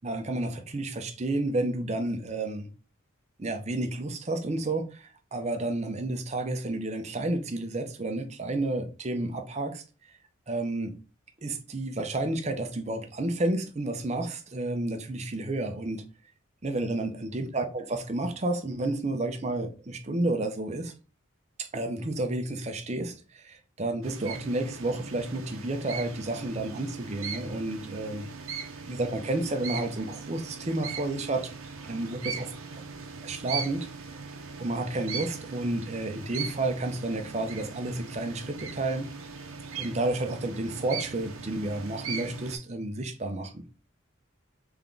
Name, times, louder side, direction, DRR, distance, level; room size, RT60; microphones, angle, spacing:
voice 1, 0.0-2.7 3.4-9.8 10.5-10.9 11.4-16.0 16.6-20.9 21.6-28.3 28.9-31.5 31.9-32.5 33.2-34.2 34.6-39.1 39.8-43.6, right 2 dB, 30° right, 0.6 m, -31 dB
sound 1, 24.0-42.6, right 5 dB, 75° right, 0.7 m, -40 dB
3.4 x 3.4 x 3.8 m
head